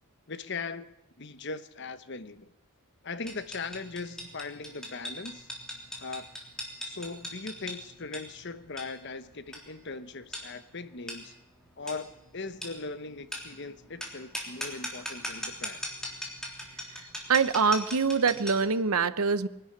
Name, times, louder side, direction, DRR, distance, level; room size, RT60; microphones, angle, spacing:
voice 1, 0.3-0.9 1.2-2.5 3.0-5.5 6.0-6.3 6.8-11.3 11.8-15.8, left 4 dB, 50° left, 12 dB, 1.0 m, -39 dB
sound 1, 3.3-18.7, left 1 dB, 5° left, 3.4 m, -40 dB
voice 2, 16.9-19.5, right 5 dB, 85° right, 14 dB, 0.9 m, -25 dB
22.0 x 12.0 x 9.9 m, 0.92 s
head